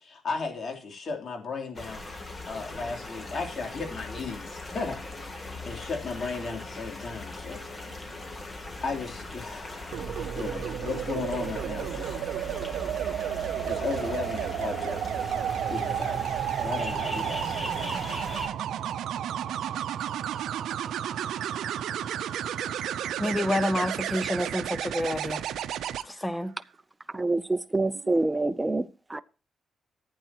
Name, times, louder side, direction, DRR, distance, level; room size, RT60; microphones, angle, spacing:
voice 1, 0.0-5.2 5.6-7.6 8.8-10.0 10.3-12.2 13.7-15.0 15.7-18.5, left 4 dB, 55° left, 3.3 m, -35 dB
sound 1, 1.7-18.5, left 2 dB, 35° left, 2.8 m, -40 dB
sound 2, 9.9-26.0 27.9-28.2, right 10 dB, 85° right, 0.6 m, -32 dB
voice 2, 23.2-25.4 26.0-26.6, left 1 dB, 15° left, 1.2 m, -28 dB
voice 3, 27.2-28.8 29.1-29.2, right 2 dB, 20° right, 0.6 m, -26 dB
15.0 x 9.1 x 3.0 m
cardioid pair, 70°, 0 cm